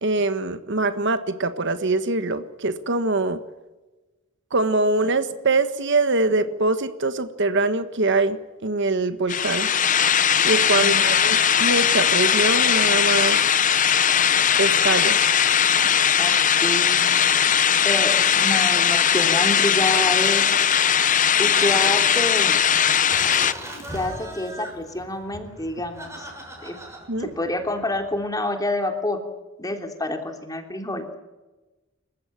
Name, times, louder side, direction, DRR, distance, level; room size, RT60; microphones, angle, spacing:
voice 1, 0.0-3.4 4.5-9.7 10.4-13.4 14.6-15.2 15.8-15.9 27.1-27.3, right 3 dB, 60° right, 11 dB, 1.5 m, -23 dB
sound 1, 9.3-23.5, left 8 dB, 40° left, 0.8 m, -19 dB
voice 2, 10.7-11.1 16.2-17.1 17.8-20.5 21.4-22.6 23.9-26.3 26.6-26.8 27.2-29.2 29.6-31.1, left 1 dB, 20° left, 5 dB, 3.2 m, -28 dB
Laughter, 23.1-28.3, right 1 dB, 15° right, 6.8 m, -40 dB
28.0 x 15.0 x 9.1 m, 1.1 s
head